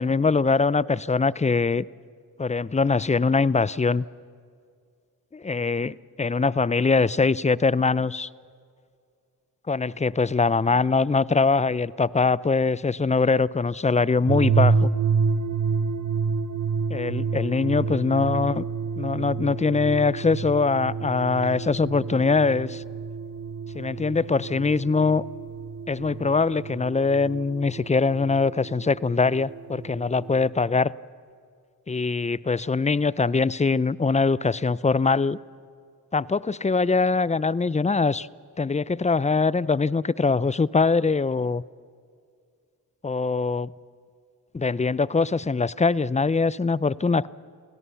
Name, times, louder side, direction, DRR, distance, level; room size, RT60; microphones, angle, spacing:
voice 1, 0.0-1.9 2.4-4.1 5.3-8.3 9.7-14.9 16.9-18.7 19.0-22.8 23.7-25.2 25.9-30.9 31.9-35.4 36.1-38.3 38.6-41.6 43.0-43.7 44.5-47.3, left 4 dB, 20° left, 21 dB, 0.5 m, -22 dB
sound 1, 14.3-30.5, right 5 dB, 50° right, 0.9 m, -29 dB
26.0 x 17.0 x 7.0 m, 2.2 s
cardioid pair, 45°, 39 cm